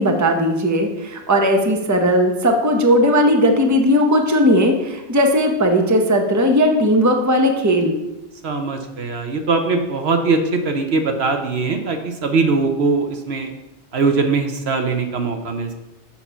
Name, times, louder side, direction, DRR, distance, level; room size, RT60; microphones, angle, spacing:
voice 1, 0.0-8.0, equal, 15° right, 3 dB, 0.8 m, -17 dB
voice 2, 8.4-13.5 13.9-15.7, right 3 dB, 65° right, 5 dB, 1.1 m, -21 dB
7.2 x 5.6 x 5.6 m, 1.0 s
omnidirectional pair, 1.2 m